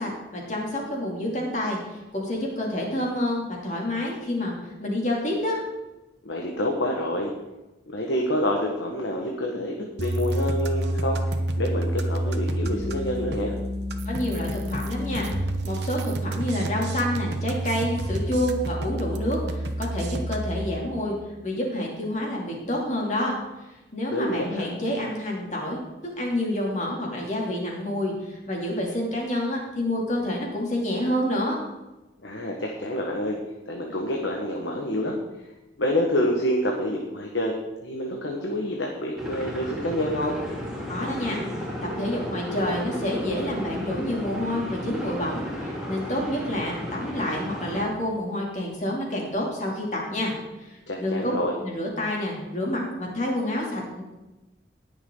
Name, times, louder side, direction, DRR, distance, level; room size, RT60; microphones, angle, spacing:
voice 1, 0.0-5.6 14.0-15.3 15.6-21.2 21.4-23.3 23.9-25.8 26.2-31.6 40.9-41.7 42.0-51.3 51.6-54.0, left 1 dB, 40° left, -2 dB, 3.0 m, -28 dB
voice 2, 6.2-7.3 7.9-11.2 11.6-13.5 24.1-24.7 32.2-33.4 33.7-35.2 35.8-37.5 37.8-40.4 50.9-51.5, left 1 dB, 90° left, 0 dB, 1.6 m, -27 dB
sound 1, 10.0-20.7, right 1 dB, 70° right, 1.1 m, -28 dB
sound 2, 39.2-47.8, left 1 dB, 5° right, 2.4 m, -34 dB
19.0 x 7.2 x 3.9 m, 1.0 s
head